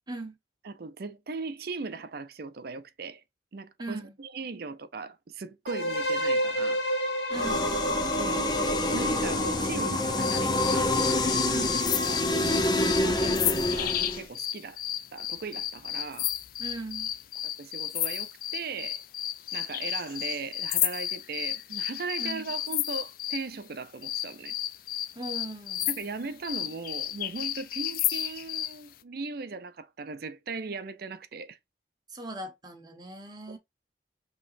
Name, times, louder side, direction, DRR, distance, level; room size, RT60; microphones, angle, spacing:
voice 1, 0.6-3.2 3.5-6.8 8.1-8.5 8.9-11.0 12.0-14.8 15.1-16.3 17.4-19.0 19.5-24.5 25.9-31.6, right 4 dB, 60° right, 0.5 m, -38 dB
voice 2, 3.8-4.1 7.3-7.8 11.5-11.9 16.6-17.1 22.2-22.5 25.1-25.9 32.1-33.6, right 2 dB, 25° right, 1.1 m, -39 dB
sound 1, 5.7-13.5, left 1 dB, 70° left, 1.1 m, -32 dB
sound 2, 7.3-14.2, left 1 dB, 25° left, 0.7 m, -27 dB
sound 3, 10.2-23.5 24.0-28.8, left 12 dB, 55° left, 0.4 m, -32 dB
5.2 x 3.0 x 2.6 m
head